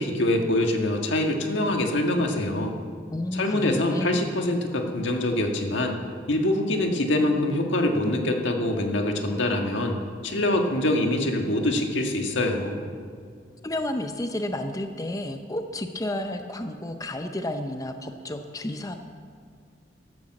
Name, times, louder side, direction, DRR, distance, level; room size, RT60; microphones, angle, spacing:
voice 1, 0.0-2.7 3.3-5.9 6.3-10.0 10.2-12.8, left 1 dB, 80° left, 3 dB, 1.6 m, -24 dB
voice 2, 3.1-4.1 13.6-19.0, left 1 dB, 20° left, 6 dB, 0.6 m, -31 dB
12.5 x 11.5 x 7.5 m, 2.1 s
head